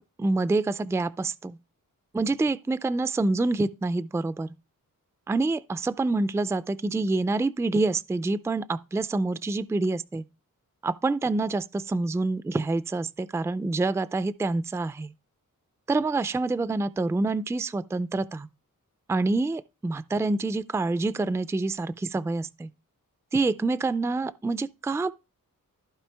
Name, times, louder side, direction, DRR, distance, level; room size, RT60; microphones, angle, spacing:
voice 1, 0.2-1.6 2.1-4.5 5.3-10.2 10.8-15.1 15.9-18.5 19.1-22.7 23.3-25.1, right 3 dB, 10° right, 0.3 m, -27 dB
14.5 x 5.0 x 3.4 m
wide cardioid pair, 105°, 34 cm